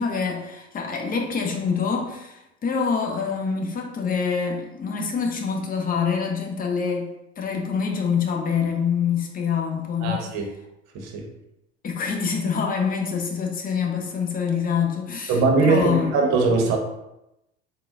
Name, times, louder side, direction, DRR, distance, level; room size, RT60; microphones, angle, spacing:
voice 1, 0.0-10.2 11.8-16.2, left 6 dB, 25° left, 2 dB, 0.8 m, -26 dB
voice 2, 10.0-10.5 10.9-11.3 15.3-16.8, right 3 dB, 55° right, 2 dB, 0.9 m, -21 dB
3.6 x 2.3 x 3.5 m, 0.88 s
hypercardioid pair, 80°, 33 cm